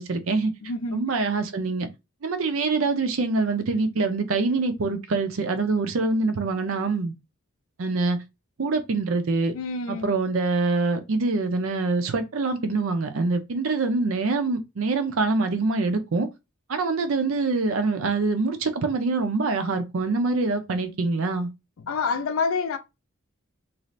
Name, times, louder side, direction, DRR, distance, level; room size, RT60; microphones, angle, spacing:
voice 1, 0.0-0.5 0.9-1.9 2.2-7.1 7.8-8.2 8.6-9.5 9.9-16.3 16.7-21.5, right 3 dB, 75° right, 0.6 m, -25 dB
voice 2, 0.6-1.0 9.5-10.1 21.8-22.8, left 4 dB, 80° left, 0.4 m, -27 dB
2.7 x 2.4 x 3.1 m
head